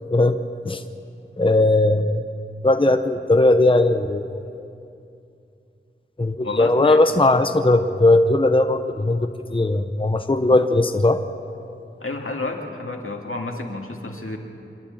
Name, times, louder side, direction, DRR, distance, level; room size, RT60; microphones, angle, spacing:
voice 1, 1.4-2.2 2.6-4.3 6.2-11.2, left 2 dB, 25° left, 7 dB, 0.8 m, -18 dB
voice 2, 6.4-7.3 12.0-14.4, left 2 dB, 80° left, 1 dB, 2.2 m, -31 dB
26.5 x 11.0 x 8.9 m, 2.6 s
wide cardioid pair, 45°, 21 cm